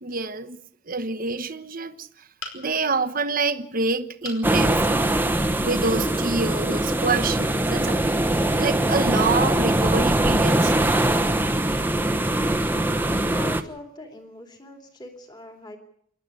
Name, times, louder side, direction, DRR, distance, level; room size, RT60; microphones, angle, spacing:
voice 1, 0.0-0.6 0.9-2.1 2.5-5.1 5.6-8.0 8.6-10.7, right 3 dB, 40° right, 1.1 m, -27 dB
sound 1, 2.4-3.0 4.2-4.5 5.1-5.2 5.5-5.6, left 4 dB, 80° left, 5.2 m, -38 dB
sound 2, 4.4-13.6, right 1 dB, 10° right, 1.0 m, -22 dB
voice 2, 13.0-15.8, left 1 dB, 20° left, 2.8 m, -42 dB
27.5 x 11.5 x 9.6 m
head